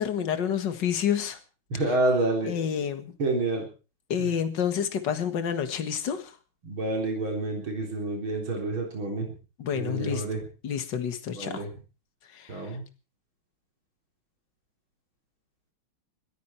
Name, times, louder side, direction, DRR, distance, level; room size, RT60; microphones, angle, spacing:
voice 1, 0.0-1.4 2.4-3.1 4.1-6.3 9.6-10.2 10.6-11.7 12.3-12.8, left 8 dB, 60° left, 9 dB, 2.3 m, -29 dB
voice 2, 1.7-2.5 3.2-3.7 4.2-4.3 6.6-9.3 9.7-10.4 11.4-11.7 12.5-12.8, right 2 dB, 80° right, 1 dB, 4.6 m, -28 dB
21.0 x 15.0 x 4.5 m, 0.37 s
omnidirectional pair, 2.2 m